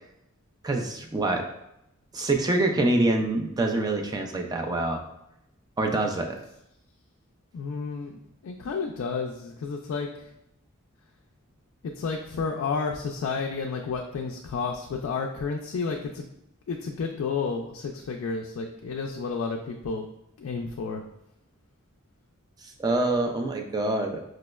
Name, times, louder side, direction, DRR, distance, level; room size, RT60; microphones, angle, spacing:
voice 1, 0.6-1.5 2.1-5.0 5.8-6.4 22.8-24.3, right 2 dB, 20° right, 3 dB, 0.3 m, -25 dB
voice 2, 7.5-10.3 12.0-16.3 16.7-20.1 20.4-21.0, left 4 dB, 75° left, 1 dB, 0.3 m, -31 dB
4.9 x 2.0 x 2.2 m, 0.81 s
head